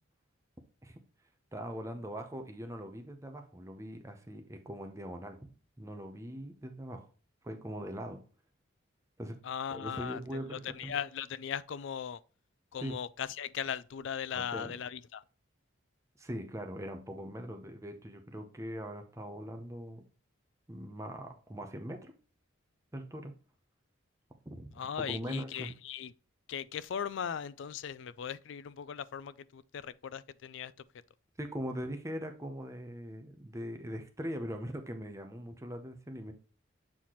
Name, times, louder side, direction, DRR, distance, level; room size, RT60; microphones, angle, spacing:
voice 1, 1.5-5.5 5.8-7.1 7.4-8.2 9.2-9.4 9.7-10.9 12.8-13.0 14.3-14.7 16.2-20.0 20.7-22.1 22.9-23.3 24.5-24.8 25.1-25.7 31.4-36.3, equal, 15° right, 0.7 m, -41 dB
voice 2, 9.4-12.2 12.7-15.2 24.8-26.1 26.5-30.7, left 8 dB, 60° left, 0.3 m, -38 dB
7.5 x 4.2 x 3.0 m
head